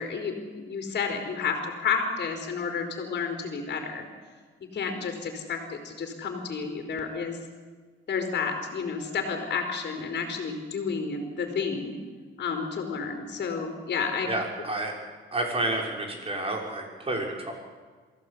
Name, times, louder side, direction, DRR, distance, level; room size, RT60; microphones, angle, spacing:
voice 1, 0.0-4.1 4.7-7.4 8.1-11.9 12.4-14.3, left 5 dB, 55° left, 3 dB, 4.0 m, -31 dB
voice 2, 14.2-14.9 15.3-17.5, right 2 dB, 30° right, 1 dB, 5.8 m, -30 dB
23.5 x 15.5 x 8.5 m, 1.5 s
cardioid pair, 90°, 20 cm